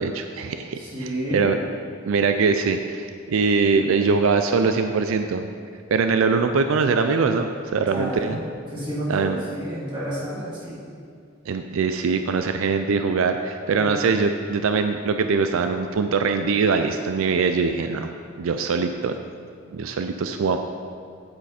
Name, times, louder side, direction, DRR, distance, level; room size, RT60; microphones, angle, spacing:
voice 1, 0.0-0.8 1.3-1.6 2.0-5.4 5.9-8.4 9.1-9.4 11.5-18.1 18.4-19.2 19.7-20.6, right 4 dB, 75° right, 7 dB, 0.4 m, -22 dB
voice 2, 0.8-1.5 7.9-8.4 8.7-10.9 13.8-14.0, equal, 25° right, -7 dB, 2.2 m, -30 dB
8.9 x 8.1 x 4.3 m, 2.2 s
head